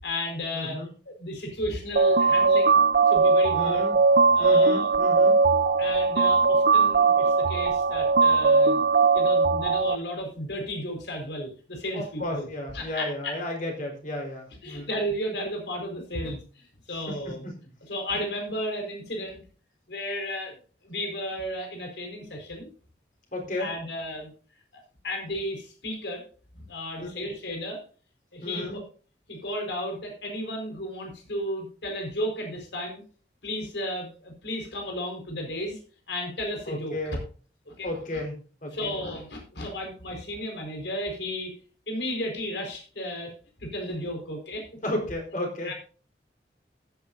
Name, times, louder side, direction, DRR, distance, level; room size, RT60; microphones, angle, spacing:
voice 1, 0.0-0.8 1.1-2.8 3.1-3.8 4.3-4.9 5.8-8.9 9.1-12.5 12.7-13.4 14.6-17.5 17.9-19.4 19.9-20.6 20.8-22.7 23.6-24.3 24.7-26.2 26.5-27.8 28.3-28.8 29.3-33.0 33.4-35.8 36.1-36.9 37.7-37.9 38.7-41.5 41.9-43.3 43.6-44.7 45.6-45.7, left 1 dB, 80° left, 2 dB, 4.5 m, -33 dB
voice 2, 0.5-0.9 3.5-4.0 4.4-5.4 11.9-14.9 16.9-17.5 23.3-23.7 27.0-27.3 28.4-28.8 36.7-37.2 37.8-39.0 44.8-45.7, left 1 dB, 45° left, 1 dB, 4.0 m, -33 dB
sound 1, 2.0-10.0, right 4 dB, 60° right, 0.5 m, -20 dB
15.0 x 9.6 x 2.6 m, 0.39 s
head